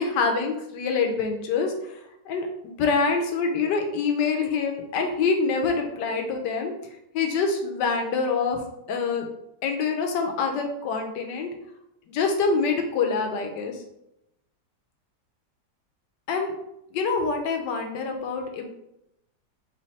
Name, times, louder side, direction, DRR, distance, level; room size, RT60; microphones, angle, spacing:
voice 1, 0.0-1.7 2.3-6.7 7.1-8.6 8.9-9.2 9.6-11.5 12.1-13.7 16.3-16.5 16.9-18.7, left 4 dB, 85° left, 4 dB, 1.3 m, -25 dB
3.2 x 3.0 x 4.1 m, 0.83 s
omnidirectional pair, 1.8 m